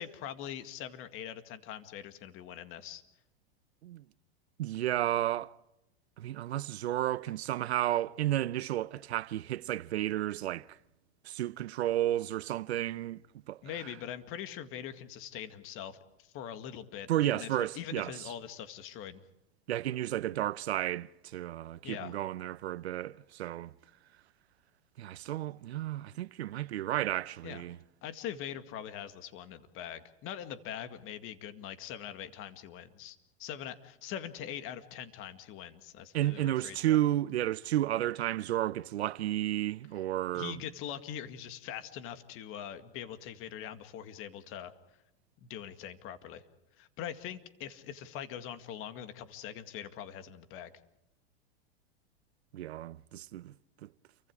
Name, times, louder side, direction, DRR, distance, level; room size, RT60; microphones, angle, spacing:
voice 1, 0.0-3.0 13.6-19.2 21.8-22.2 27.4-27.7 28.0-37.0 40.3-44.7 45.4-46.4 46.8-50.7, left 10 dB, 40° left, 2.1 m, -42 dB
voice 2, 4.6-5.6 6.2-10.7 11.2-13.2 13.5-13.6 17.1-18.1 19.7-23.7 25.0-27.8 36.1-40.6 52.5-53.5 53.8-53.9, right 13 dB, 90° right, 0.8 m, -32 dB
29.5 x 24.0 x 4.9 m
supercardioid pair, 130°, 31 cm